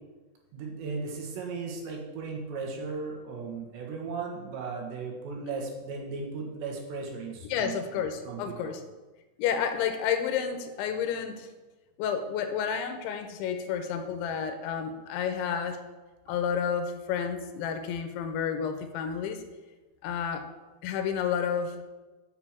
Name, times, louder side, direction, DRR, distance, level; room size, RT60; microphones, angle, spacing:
voice 1, 0.5-8.7, right 4 dB, 70° right, 0 dB, 3.7 m, -36 dB
voice 2, 7.5-8.8 9.4-11.5 12.0-15.8 16.3-19.4 20.0-20.5 20.8-21.8, left 7 dB, 80° left, 7 dB, 3.1 m, -30 dB
10.5 x 6.9 x 7.4 m, 1.2 s
omnidirectional pair, 5.5 m